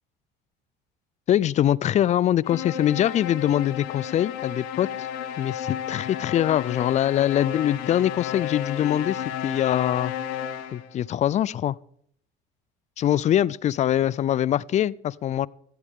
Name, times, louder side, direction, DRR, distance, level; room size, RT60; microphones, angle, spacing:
voice 1, 1.3-5.1 5.4-10.1 10.7-11.8 13.0-15.5, left 11 dB, 40° left, 0.4 m, -23 dB
sound 1, 2.4-11.0, left 10 dB, 90° left, 1.5 m, -33 dB
16.5 x 14.0 x 3.7 m
cardioid pair, 110°, 19 cm